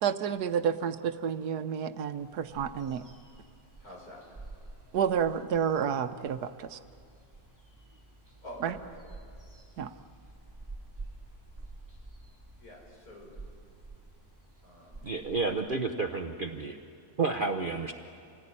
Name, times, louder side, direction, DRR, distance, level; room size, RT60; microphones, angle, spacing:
voice 1, 0.0-3.0 4.9-6.8 8.6-8.8 9.8-9.9, right 8 dB, 85° right, 11 dB, 1.4 m, -30 dB
sound 1, 2.2-15.5, right 2 dB, 10° right, 3.6 m, -50 dB
voice 2, 3.8-4.2 8.4-9.2 12.6-13.3 14.6-15.1, left 1 dB, 70° left, -2 dB, 7.1 m, -47 dB
voice 3, 15.0-16.8 17.2-17.9, right 4 dB, 40° right, 5 dB, 1.0 m, -30 dB
27.5 x 18.5 x 10.0 m, 2.3 s
omnidirectional pair, 1.6 m